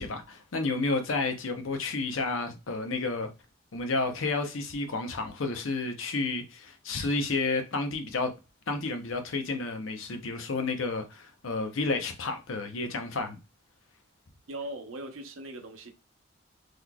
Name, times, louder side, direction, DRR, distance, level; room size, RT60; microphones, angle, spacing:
voice 1, 0.0-3.3 3.7-8.3 8.7-13.4, left 3 dB, 80° left, 0.7 m, -31 dB
voice 2, 14.5-15.9, right 1 dB, 80° right, 0.7 m, -39 dB
3.9 x 3.1 x 2.2 m
head